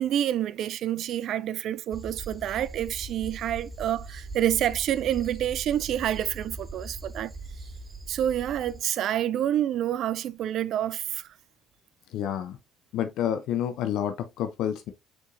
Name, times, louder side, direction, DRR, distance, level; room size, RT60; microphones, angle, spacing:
voice 1, 0.0-7.3 8.1-11.3, right 11 dB, 60° right, 0.3 m, -28 dB
sound 1, 1.9-8.8, right 3 dB, 15° right, 2.5 m, -41 dB
voice 2, 12.1-12.6 12.9-14.9, left 10 dB, 65° left, 0.6 m, -29 dB
4.5 x 4.4 x 2.6 m
hypercardioid pair, 55°, 0 cm